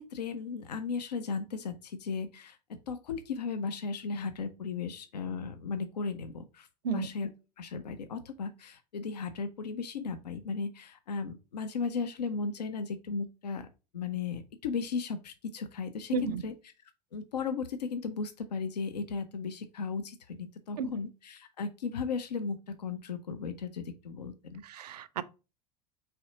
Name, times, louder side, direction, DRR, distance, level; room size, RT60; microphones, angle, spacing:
voice 1, 0.0-2.6 2.9-7.3 7.6-13.7 13.9-16.1 16.4-16.5 17.1-24.6, left 5 dB, 75° left, 0.5 m, -36 dB
voice 2, 16.1-16.5 20.8-20.9 24.6-25.2, right 4 dB, 70° right, 0.4 m, -32 dB
4.2 x 3.3 x 3.8 m
figure-of-eight pair, 75°, 21 cm